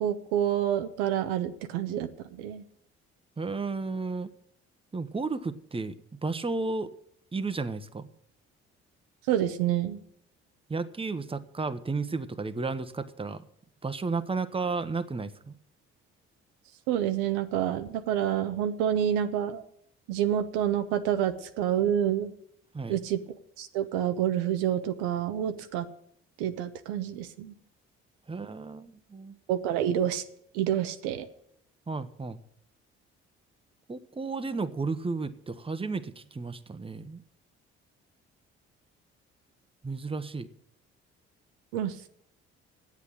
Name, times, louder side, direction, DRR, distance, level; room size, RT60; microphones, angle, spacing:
voice 1, 0.0-2.1 2.4-2.6 9.3-10.0 16.9-19.6 20.1-22.3 22.9-23.2 23.6-25.9 26.4-27.5 29.5-30.2 30.5-31.3 41.7-42.1, right 10 dB, 85° right, 8 dB, 0.8 m, -28 dB
voice 2, 3.4-4.3 4.9-5.9 6.2-6.9 7.3-8.1 10.7-13.4 13.8-15.5 22.7-23.0 28.3-29.3 31.9-32.4 33.9-37.2 39.8-40.5, right 4 dB, 20° right, 11 dB, 0.9 m, -33 dB
8.3 x 8.2 x 9.2 m, 0.70 s
hypercardioid pair, 55°, 30 cm